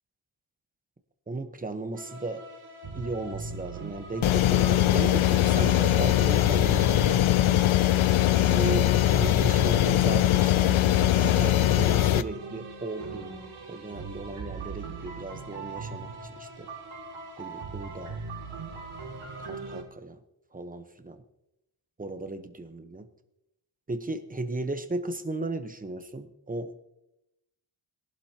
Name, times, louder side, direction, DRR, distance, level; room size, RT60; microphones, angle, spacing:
voice 1, 1.3-2.4 2.9-7.1 8.1-10.9 11.2-13.4 13.7-16.7 17.4-18.2 19.2-20.2 20.5-21.2 22.0-23.1 23.9-26.8, right 2 dB, 15° right, 8 dB, 1.0 m, -35 dB
sound 1, 1.9-19.8, right 4 dB, 90° right, 2.7 m, -40 dB
sound 2, 4.2-12.2, left 13 dB, 75° left, 0.6 m, -21 dB
22.0 x 12.0 x 2.9 m, 0.86 s
wide cardioid pair, 135°, 49 cm